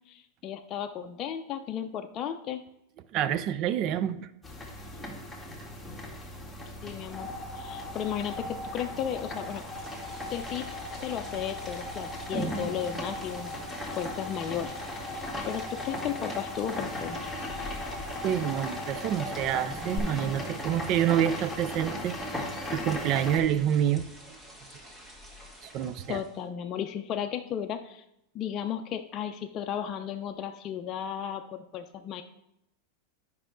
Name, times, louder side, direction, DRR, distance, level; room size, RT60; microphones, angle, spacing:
voice 1, 0.1-2.6 6.8-7.3 7.5-9.6 10.3-10.7 11.0-13.5 14.0-14.8 15.1-17.7 26.1-28.0 28.3-32.2, left 9 dB, 40° left, 5 dB, 0.5 m, -34 dB
voice 2, 3.1-4.3 18.2-24.1 25.6-26.2, right 10 dB, 45° right, 15 dB, 0.5 m, -28 dB
sound 1, 4.4-23.4, equal, ahead, 1.9 m, -38 dB
sound 2, 6.8-20.0, left 2 dB, 15° left, 2.2 m, -41 dB
sound 3, 8.8-26.4, equal, 15° right, 1.8 m, -49 dB
8.9 x 5.6 x 3.8 m, 0.80 s
hypercardioid pair, 115°, 0 cm